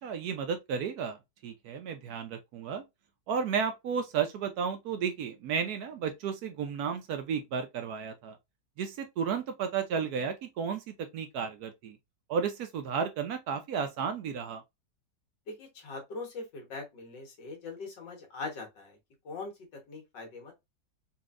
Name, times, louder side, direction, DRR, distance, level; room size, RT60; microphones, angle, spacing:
voice 1, 0.0-2.8 3.3-8.4 8.8-12.0 12.3-14.6, right 6 dB, 70° right, 1.0 m, -33 dB
voice 2, 15.5-19.0 19.2-20.5, left 3 dB, 80° left, 2.0 m, -41 dB
4.1 x 2.7 x 2.4 m
omnidirectional pair, 1.9 m